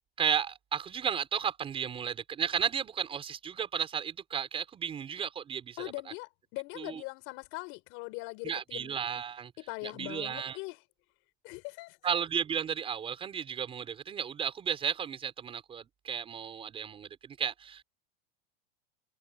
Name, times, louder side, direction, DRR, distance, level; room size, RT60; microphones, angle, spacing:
voice 1, 0.2-5.9 6.8-7.0 8.4-9.5 9.8-10.6 12.0-17.8, right 8 dB, 20° right, 5.5 m, -34 dB
voice 2, 5.8-9.0 9.6-10.8 11.4-12.0, left 26 dB, 45° left, 6.9 m, -41 dB
supercardioid pair, 175°, 30 cm